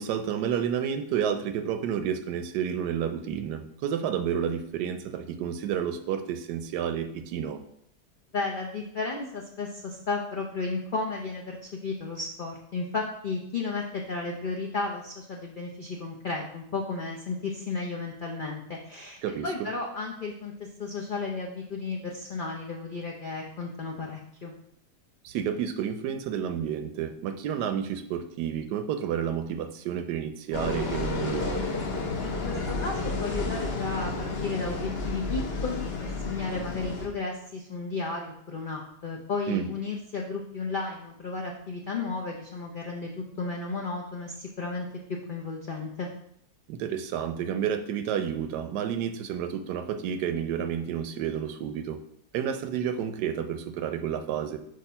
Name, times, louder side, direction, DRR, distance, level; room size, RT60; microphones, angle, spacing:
voice 1, 0.0-7.6 19.2-19.5 25.2-31.7 39.5-39.7 46.7-52.0 52.3-54.6, right 8 dB, 85° right, 9 dB, 1.2 m, -30 dB
voice 2, 8.3-24.5 32.2-43.1 43.4-44.9 45.3-46.1, left 3 dB, 75° left, 0 dB, 0.4 m, -33 dB
sound 1, 30.5-37.1, left 3 dB, 45° left, 0.9 m, -31 dB
6.5 x 2.6 x 5.5 m, 0.72 s
omnidirectional pair, 1.8 m